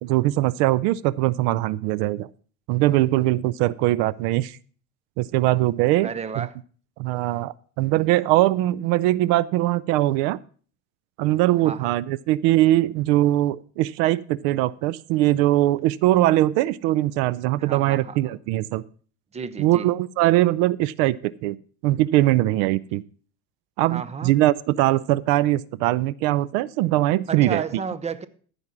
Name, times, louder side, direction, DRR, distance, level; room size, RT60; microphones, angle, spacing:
voice 1, 0.0-2.3 2.7-4.6 5.2-6.1 6.4-6.5 7.0-10.4 11.2-18.8 19.6-21.6 21.8-23.0 23.8-27.6, right 16 dB, 80° right, 0.6 m, -21 dB
voice 2, 6.0-6.6 11.6-12.0 17.6-18.4 19.3-19.9 23.9-24.3 27.3-28.3, right 6 dB, 15° right, 0.6 m, -32 dB
13.5 x 5.4 x 6.0 m
supercardioid pair, 115°, 40 cm